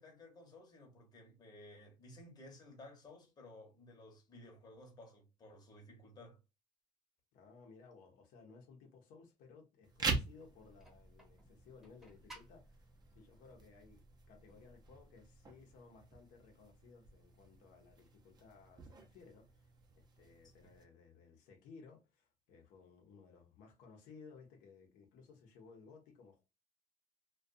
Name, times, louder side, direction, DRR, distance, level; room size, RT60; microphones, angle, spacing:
voice 1, 0.0-6.4 20.6-20.7, left 1 dB, 30° left, 0.9 m, -56 dB
voice 2, 7.3-14.0 14.3-26.4, left 4 dB, 80° left, 0.7 m, -59 dB
sound 1, 9.8-20.8, right 4 dB, 30° right, 0.6 m, -45 dB
sound 2, 10.4-15.4, right 1 dB, ahead, 0.9 m, -61 dB
2.4 x 2.3 x 2.5 m
cardioid pair, 130°, 14 cm